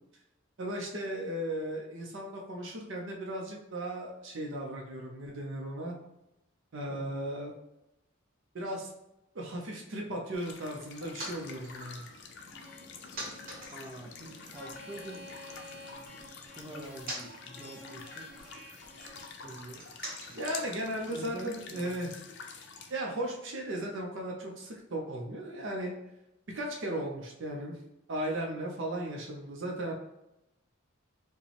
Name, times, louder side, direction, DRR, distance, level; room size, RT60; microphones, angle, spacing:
voice 1, 0.6-6.0 6.7-7.5 8.5-8.9 9.3-12.0 20.3-22.1 22.9-25.9 26.5-27.8 28.1-29.9, right 1 dB, 60° right, 0 dB, 0.7 m, -36 dB
sound 1, 10.3-22.9, left 5 dB, 55° left, 0.6 m, -48 dB
sound 2, 10.7-15.3 15.6-21.7, right 1 dB, 45° right, 1.0 m, -48 dB
sound 3, 12.5-19.2, left 1 dB, 10° left, 1.0 m, -51 dB
voice 2, 13.7-15.2 16.6-18.3 19.4-19.8 21.1-22.0, right 1 dB, 15° right, 0 dB, 0.6 m, -45 dB
4.9 x 2.2 x 3.3 m, 0.89 s
head